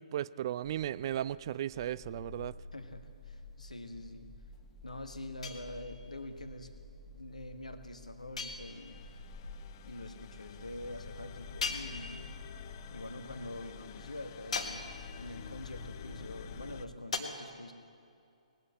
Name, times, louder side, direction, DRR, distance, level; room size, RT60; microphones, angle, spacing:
voice 1, 0.0-2.5, right 11 dB, 40° right, 19 dB, 0.3 m, -35 dB
sound 1, 0.6-16.9, left 2 dB, 20° left, 1.6 m, -51 dB
voice 2, 2.7-4.3 4.8-6.7 7.1-9.1 9.8-12.4 12.9-14.9 15.2-17.7, left 1 dB, 80° left, 7 dB, 1.4 m, -45 dB
sound 2, 5.4-6.2 8.4-9.1 11.6-12.5 14.5-15.3 17.1-17.2, left 4 dB, 65° left, 1.6 m, -39 dB
sound 3, 8.7-16.9, left 7 dB, 35° left, 0.5 m, -49 dB
19.5 x 8.2 x 8.6 m, 2.5 s
figure-of-eight pair, 130°, 4 cm